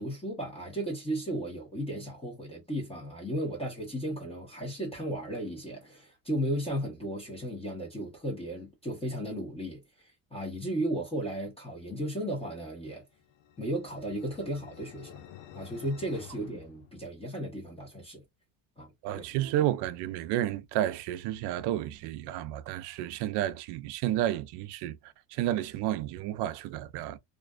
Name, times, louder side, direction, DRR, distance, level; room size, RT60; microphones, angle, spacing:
voice 1, 0.0-13.0 13.6-15.1 15.5-18.2 18.8-18.9 19.1-19.2, right 1 dB, 10° left, 0.9 m, -35 dB
sound 1, 13.1-17.6, left 10 dB, 80° left, 0.7 m, -51 dB
voice 2, 19.0-27.2, right 13 dB, 60° right, 0.5 m, -31 dB
2.5 x 2.2 x 2.3 m
cardioid pair, 115°, 47 cm